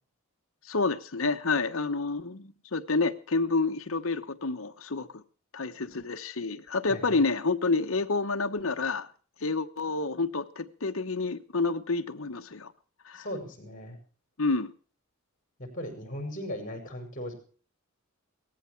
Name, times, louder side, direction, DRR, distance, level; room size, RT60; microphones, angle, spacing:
voice 1, 0.7-5.2 5.5-9.1 9.4-12.7 13.1-13.2 14.4-14.7, left 3 dB, 65° left, 1.1 m, -29 dB
voice 2, 6.9-7.2 13.1-14.0 15.6-17.3, equal, 40° left, 5.8 m, -38 dB
18.0 x 14.5 x 4.6 m
head